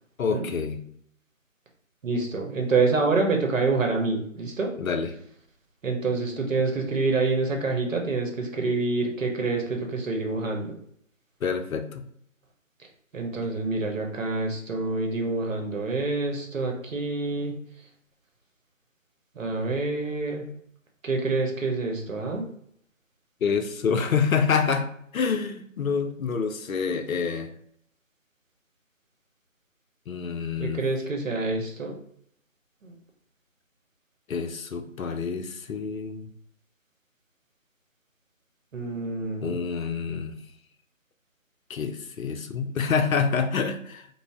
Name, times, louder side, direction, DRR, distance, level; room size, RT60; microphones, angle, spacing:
voice 1, 0.2-0.9 4.8-5.2 11.4-12.1 23.4-27.5 30.1-30.9 34.3-36.3 39.4-40.4 41.7-44.1, left 6 dB, 85° left, 6 dB, 0.5 m, -27 dB
voice 2, 2.0-4.7 5.8-10.7 13.1-17.6 19.4-20.5 21.0-22.5 30.6-31.9 32.8-32.9 38.7-39.6, right 3 dB, 70° right, 2 dB, 0.8 m, -27 dB
2.5 x 2.0 x 3.2 m, 0.68 s
figure-of-eight pair, 155°, 40 cm